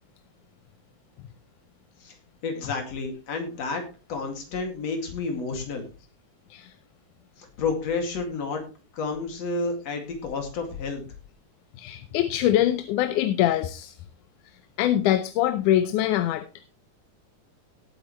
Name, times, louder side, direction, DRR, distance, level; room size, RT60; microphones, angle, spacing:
voice 1, 2.4-5.9 7.4-8.7 8.9-11.1, left 4 dB, 60° left, 4 dB, 3.3 m, -30 dB
voice 2, 11.8-13.9 14.8-16.4, left 12 dB, 90° left, 11 dB, 2.2 m, -23 dB
17.5 x 8.9 x 3.1 m, 0.33 s
omnidirectional pair, 3.5 m